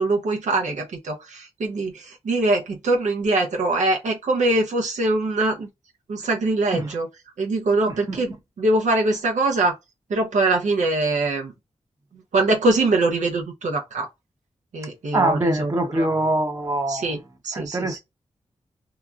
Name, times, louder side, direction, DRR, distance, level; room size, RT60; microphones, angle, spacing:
voice 1, 0.0-5.7 6.1-7.1 7.4-9.8 10.1-11.5 12.3-14.1 14.7-16.1 16.9-18.0, right 2 dB, 85° right, 0.8 m, -23 dB
voice 2, 7.9-8.2 15.1-17.2 17.5-18.0, right 1 dB, 25° right, 0.8 m, -24 dB
2.9 x 2.3 x 2.4 m
cardioid pair, 55°, 12 cm